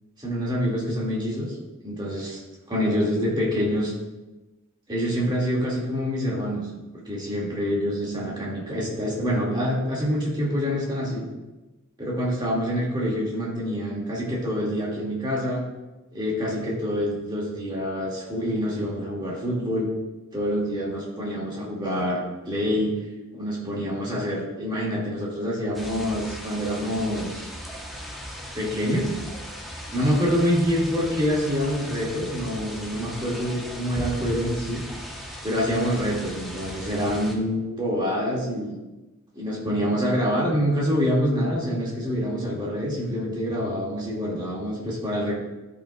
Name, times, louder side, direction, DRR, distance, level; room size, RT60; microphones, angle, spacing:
voice 1, 0.2-1.6 1.8-2.4 2.7-3.9 4.9-6.7 7.1-11.2 12.0-15.6 16.1-19.9 20.3-22.9 23.3-27.5 28.5-29.1 29.9-34.8 35.4-38.8 39.4-45.3, equal, 20° right, -5 dB, 2.0 m, -26 dB
sound 1, 25.7-37.4, equal, ahead, 0.9 m, -37 dB
13.5 x 5.7 x 2.3 m, 1.1 s
head